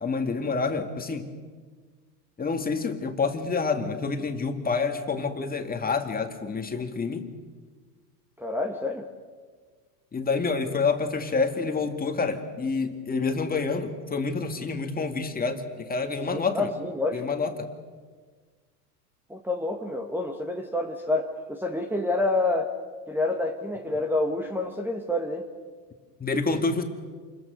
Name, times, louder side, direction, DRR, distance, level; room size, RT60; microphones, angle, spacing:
voice 1, 0.0-1.3 2.4-7.3 10.1-16.7 17.1-17.7 26.2-26.8, left 4 dB, 20° left, 5 dB, 2.3 m, -28 dB
voice 2, 8.4-9.1 16.3-17.2 19.3-22.7 23.1-25.5, left 2 dB, 5° right, 4 dB, 1.7 m, -28 dB
28.5 x 22.0 x 6.6 m, 1.5 s
hypercardioid pair, 100°, 47 cm